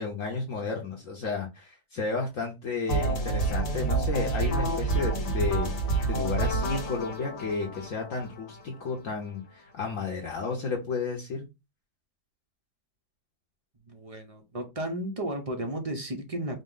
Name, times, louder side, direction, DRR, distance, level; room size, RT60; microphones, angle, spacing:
voice 1, 0.0-11.4, left 4 dB, 60° left, 1.1 m, -32 dB
sound 1, 2.9-8.9, right 3 dB, 85° left, 1.6 m, -28 dB
voice 2, 13.9-16.6, right 1 dB, 50° right, 0.4 m, -34 dB
5.2 x 2.0 x 3.7 m
omnidirectional pair, 1.7 m